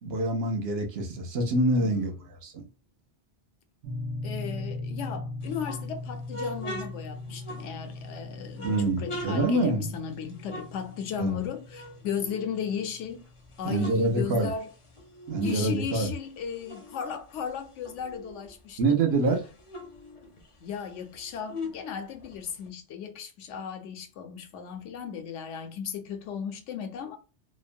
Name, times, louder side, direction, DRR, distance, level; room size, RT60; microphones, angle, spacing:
voice 1, 0.0-2.1 2.4-2.7 8.6-9.9 11.2-11.3 13.6-14.5 15.3-16.1 18.8-19.4, right 2 dB, 65° right, 0.9 m, -26 dB
voice 2, 1.8-2.3 4.2-13.2 13.6-14.7 15.4-19.0 20.6-27.2, left 7 dB, 85° left, 0.9 m, -36 dB
sound 1, 3.8-14.0, left 2 dB, 85° right, 1.0 m, -39 dB
sound 2, 5.4-8.1 8.5-11.4 11.7-13.0 13.4-15.7 16.0-18.5 18.9-19.0 19.2-22.7, left 1 dB, 40° left, 0.5 m, -42 dB
2.9 x 2.1 x 2.5 m
omnidirectional pair, 1.2 m